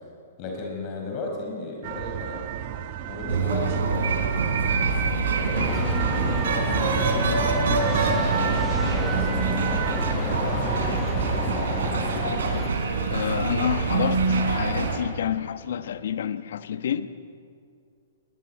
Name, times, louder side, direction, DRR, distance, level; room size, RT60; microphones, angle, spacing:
voice 1, 0.4-2.4 3.1-4.3 5.0-5.8 6.8-11.0, left 2 dB, 35° left, 1 dB, 5.0 m, -35 dB
sound 1, 1.8-10.1, right 10 dB, 45° right, 1.4 m, -32 dB
sound 2, 3.3-15.0, right 4 dB, 70° right, 4.3 m, -25 dB
sound 3, 5.5-12.7, left 8 dB, 20° left, 0.6 m, -32 dB
voice 2, 13.1-17.1, left 9 dB, 65° left, 12 dB, 1.1 m, -28 dB
21.0 x 19.0 x 9.4 m, 2.3 s
hypercardioid pair, 120°, 0 cm